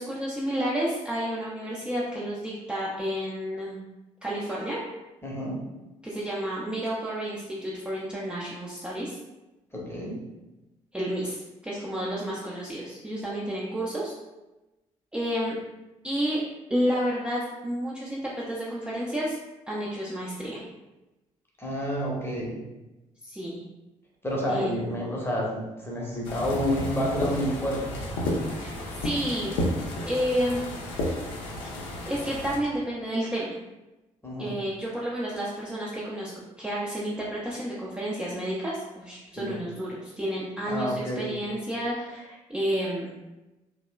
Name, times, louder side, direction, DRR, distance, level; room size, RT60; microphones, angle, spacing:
voice 1, 0.0-3.8 4.2-4.8 6.0-9.1 10.9-14.1 15.1-15.6 16.0-16.4 16.7-19.4 19.7-20.6 23.2-23.6 24.5-24.8 28.6-28.7 29.0-29.6 30.0-30.6 32.1-33.6 34.4-36.3 36.6-43.1, equal, 5° right, -6 dB, 0.5 m, -30 dB
voice 2, 5.2-5.6 9.7-10.2 21.6-22.6 24.2-28.0 34.2-34.5 39.4-39.6 40.7-41.3, equal, 15° left, -3 dB, 0.8 m, -29 dB
sound 1, 26.2-32.6, left 1 dB, 70° left, 0.5 m, -32 dB
2.8 x 2.0 x 2.2 m, 1.0 s
figure-of-eight pair, 45°, 18 cm